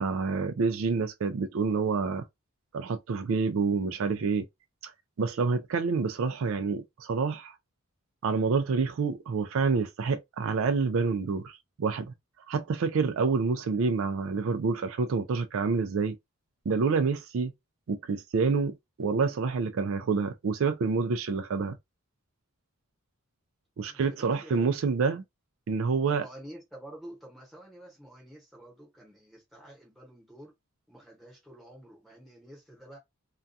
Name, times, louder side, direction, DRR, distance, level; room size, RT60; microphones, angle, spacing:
voice 1, 0.0-2.2 2.7-4.5 5.2-7.6 8.2-12.1 12.5-16.2 16.7-17.5 17.9-21.8 23.8-25.2 25.7-26.2, right 4 dB, 70° right, 0.4 m, -28 dB
voice 2, 23.9-24.8 26.1-30.5 30.9-33.0, right 1 dB, ahead, 0.9 m, -49 dB
2.3 x 2.3 x 2.6 m
head